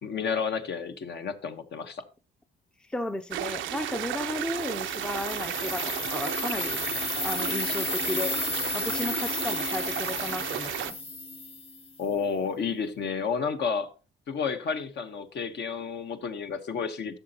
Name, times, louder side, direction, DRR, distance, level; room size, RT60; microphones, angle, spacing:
voice 1, 0.0-2.0 12.0-13.9 14.3-17.2, left 6 dB, 60° left, 1.2 m, -31 dB
voice 2, 2.9-6.8 7.2-8.4 8.7-11.0, left 1 dB, 5° left, 0.5 m, -34 dB
sound 1, 3.3-10.9, right 12 dB, 75° right, 0.6 m, -33 dB
sound 2, 4.1-12.0, left 4 dB, 30° left, 0.9 m, -33 dB
12.0 x 6.7 x 2.9 m
cardioid pair, 90°, 20 cm